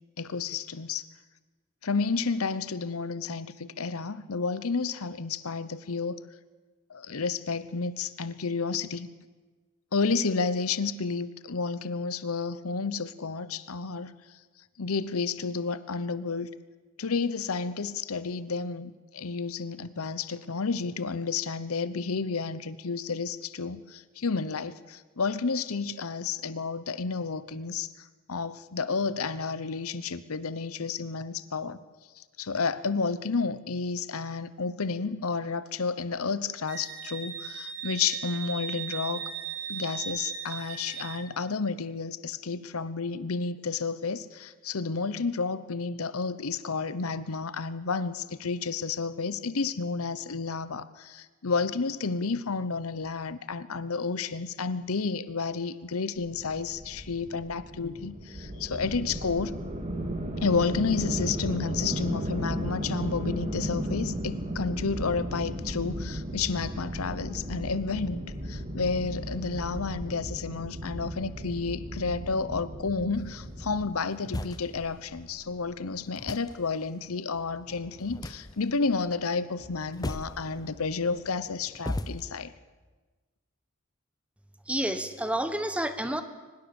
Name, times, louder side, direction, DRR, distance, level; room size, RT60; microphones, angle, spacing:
voice 1, 0.2-1.0 1.8-6.2 6.9-9.1 9.9-14.1 14.8-16.5 17.0-31.8 32.2-39.3 39.7-59.6 60.4-82.5, left 4 dB, 85° left, 15 dB, 0.9 m, -31 dB
Wind instrument woodwind instrument, 36.7-41.2, right 8 dB, 75° right, 3.6 m, -37 dB
sound 1, 56.2-73.9, right 1 dB, 35° right, 2.9 m, -35 dB
sound 2, 73.1-82.3, left 1 dB, 20° left, 0.7 m, -40 dB
voice 2, 84.7-86.2, right 1 dB, 5° right, 9 dB, 1.3 m, -29 dB
23.5 x 20.5 x 7.1 m, 1.3 s
head